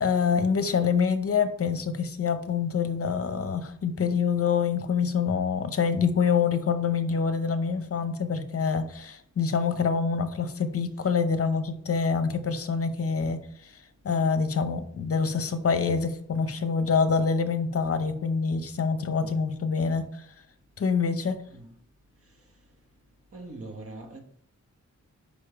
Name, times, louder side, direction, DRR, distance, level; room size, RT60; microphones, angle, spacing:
voice 1, 0.0-13.7 14.0-20.3 20.8-21.4, left 5 dB, 50° left, 0.7 m, -26 dB
voice 2, 23.3-24.2, right 2 dB, 50° right, 1.2 m, -41 dB
5.2 x 5.1 x 4.9 m
wide cardioid pair, 125°, 30 cm